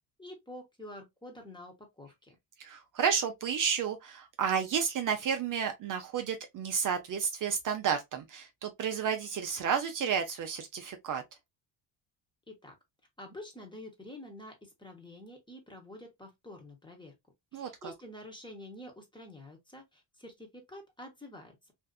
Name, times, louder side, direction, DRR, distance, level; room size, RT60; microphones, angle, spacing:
voice 1, 0.2-2.4 12.5-12.7 13.2-17.1 17.5-21.7, left 1 dB, 10° left, 0.9 m, -48 dB
voice 2, 2.6-11.2 17.5-17.9, right 7 dB, 50° right, 0.5 m, -31 dB
2.6 x 2.4 x 2.3 m
cardioid pair, 110°, 43 cm